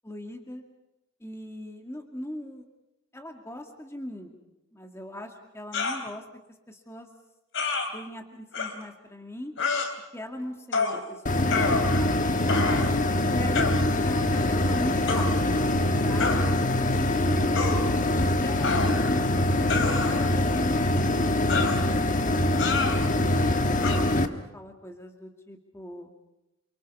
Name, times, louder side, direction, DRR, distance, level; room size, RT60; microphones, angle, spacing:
voice 1, 0.0-0.6 1.2-2.6 3.1-4.3 4.7-6.2 6.7-7.1 7.9-9.5 10.1-12.6 13.3-13.8 14.0-15.3 16.0-16.3 16.8-17.5 18.3-21.4 23.5-26.1, left 1 dB, 15° left, 3 dB, 2.0 m, -39 dB
sound 1, 5.7-6.0 7.5-7.9 8.5-8.7 9.6-9.9 10.7-11.0 11.5-12.1 12.5-12.9 13.5-13.8 15.1-15.3 16.2-16.5 17.5-17.8 18.6-19.2 19.7-20.3 21.5-21.8 22.6-23.0 23.8-24.0, left 4 dB, 65° left, 3.3 m, -28 dB
sound 2, 11.3-24.3, left 1 dB, 40° left, 1.3 m, -24 dB
29.0 x 24.5 x 5.5 m, 0.94 s
head